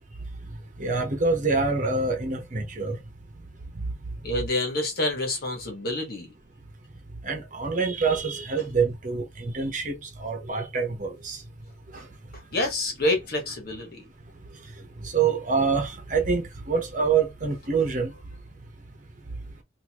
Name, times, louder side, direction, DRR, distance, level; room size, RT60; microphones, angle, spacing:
voice 1, 0.8-3.0 7.2-11.4 15.0-18.1, right 4 dB, 40° right, 1.1 m, -26 dB
voice 2, 4.2-6.3 12.5-14.0, left 2 dB, 50° left, 1.5 m, -27 dB
3.8 x 2.8 x 2.9 m
head